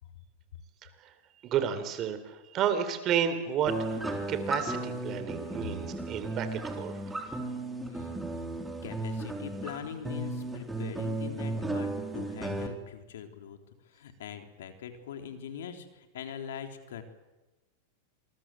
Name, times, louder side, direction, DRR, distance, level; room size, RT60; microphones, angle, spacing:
voice 1, 1.4-4.0 4.3-7.4, right 8 dB, 35° right, 10 dB, 3.8 m, -31 dB
sound 1, 3.7-12.7, right 2 dB, 5° right, 3.8 m, -35 dB
voice 2, 7.9-8.5 8.8-17.0, left 8 dB, 80° left, 6 dB, 3.6 m, -42 dB
27.5 x 22.0 x 7.7 m, 1.1 s
supercardioid pair, 130°, 0 cm